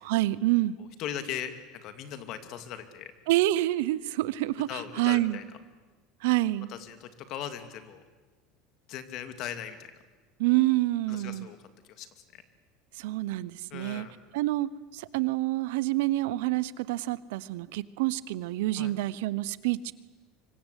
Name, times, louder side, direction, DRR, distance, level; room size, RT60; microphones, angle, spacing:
voice 1, 0.0-0.8 3.3-5.4 6.2-6.7 10.4-11.5 13.0-14.1 14.3-19.9, right 17 dB, 80° right, 18 dB, 1.0 m, -27 dB
voice 2, 1.0-1.5 1.8-3.1 4.7-5.4 6.7-8.0 8.9-9.8 11.1-11.6 12.0-12.1 12.3-12.4 13.7-14.1 18.8-18.9, left 10 dB, 45° left, 10 dB, 2.4 m, -38 dB
25.0 x 24.0 x 8.4 m, 1.2 s
cardioid pair, 155°, 0 cm